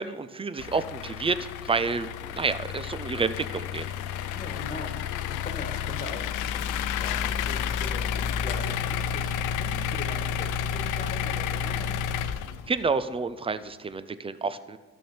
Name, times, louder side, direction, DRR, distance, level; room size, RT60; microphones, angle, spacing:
voice 1, 0.0-1.4 1.7-3.8 12.7-14.8, right 4 dB, 20° right, 14 dB, 0.4 m, -29 dB
sound 1, 0.6-12.9, left 8 dB, 85° left, 0.5 m, -31 dB
voice 2, 4.3-9.3 9.6-12.0, left 2 dB, 30° left, 4 dB, 1.4 m, -41 dB
12.5 x 6.3 x 4.3 m, 1.3 s
cardioid pair, 90°, 30 cm